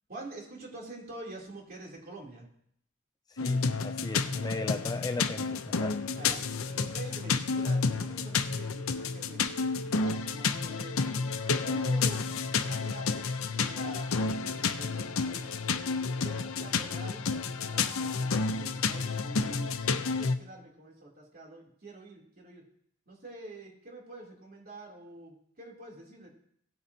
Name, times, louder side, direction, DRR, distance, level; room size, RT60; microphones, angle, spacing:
voice 1, 0.1-2.5 6.1-6.4 6.7-9.4 9.8-11.0 11.6-12.4 12.6-13.3 13.6-15.5 16.1-22.6 23.1-26.3, right 2 dB, 45° right, -2 dB, 3.1 m, -46 dB
voice 2, 3.3-6.0, left 2 dB, 20° left, 7 dB, 0.4 m, -37 dB
sound 1, 3.4-20.3, left 4 dB, 75° left, 0.7 m, -30 dB
17.0 x 9.4 x 2.8 m, 0.68 s
head